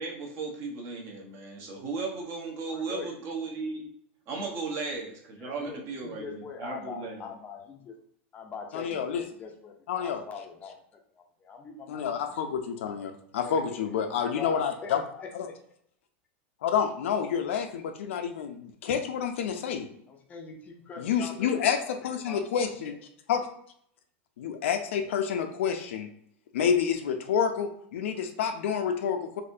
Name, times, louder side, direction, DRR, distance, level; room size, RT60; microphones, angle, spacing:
voice 1, 0.0-3.9 4.3-7.2, right 4 dB, 40° right, 0 dB, 1.0 m, -36 dB
voice 2, 2.7-3.1 4.4-4.5 5.4-8.0 8.3-10.8 11.1-12.3 13.4-13.8 14.1-15.5 20.1-21.9 22.3-22.9, left 5 dB, 25° left, 3 dB, 0.5 m, -42 dB
voice 3, 8.7-9.2 9.9-10.2 11.9-15.0 15.3-15.5 16.6-19.9 21.0-22.9 23.3-23.5 24.4-26.1 26.5-29.4, left 7 dB, 85° left, 6 dB, 0.5 m, -29 dB
4.1 x 2.6 x 2.7 m, 0.68 s
supercardioid pair, 140°, 7 cm